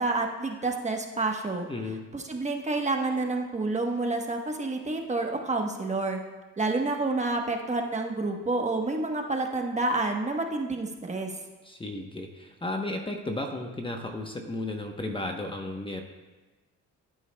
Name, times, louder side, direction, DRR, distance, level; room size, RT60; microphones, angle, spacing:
voice 1, 0.0-1.7 2.1-6.2 6.6-11.3, right 3 dB, 25° right, 2 dB, 1.1 m, -29 dB
voice 2, 1.7-2.1 11.6-16.0, left 2 dB, 15° left, 3 dB, 0.9 m, -34 dB
14.0 x 8.4 x 2.2 m, 1.2 s
cardioid pair, 90°, 30 cm